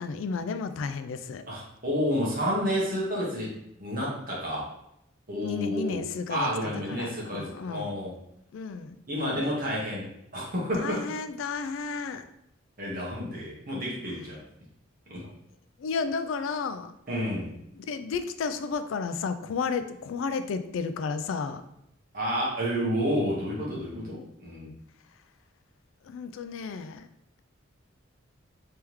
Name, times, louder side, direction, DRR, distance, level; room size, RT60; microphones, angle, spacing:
voice 1, 0.0-1.4 5.4-6.5 6.9-7.9 8.5-9.0 10.8-12.2 15.8-16.9 17.8-21.6 26.0-27.1, left 5 dB, 70° left, 10 dB, 0.3 m, -32 dB
voice 2, 1.5-3.5 3.8-4.7 5.3-8.1 9.1-11.0 12.8-14.4 15.1-15.2 17.1-17.5 22.1-24.7, equal, 45° right, -5 dB, 1.4 m, -30 dB
3.4 x 3.4 x 3.0 m, 0.78 s
head